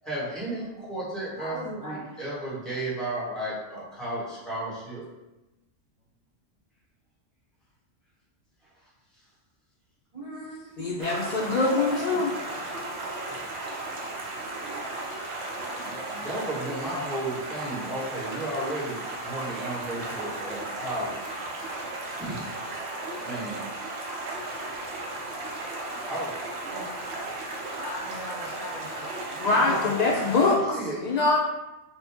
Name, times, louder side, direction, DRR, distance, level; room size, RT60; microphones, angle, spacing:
voice 1, 0.0-5.0 13.2-13.8 15.8-21.3 22.2-22.5 23.2-23.7 26.1-26.5 29.5-29.9 30.7-31.1, right 1 dB, ahead, -9 dB, 1.3 m, -34 dB
voice 2, 1.4-2.2 10.1-10.8 11.4-12.2 26.7-27.0 27.8-30.3, equal, 30° right, -8 dB, 0.7 m, -40 dB
voice 3, 10.8-12.3 29.4-31.4, left 3 dB, 85° left, -3 dB, 0.3 m, -24 dB
Stream, 11.0-30.6, right 2 dB, 60° right, 0.9 m, -35 dB
4.4 x 2.6 x 3.5 m, 1.0 s
omnidirectional pair, 1.3 m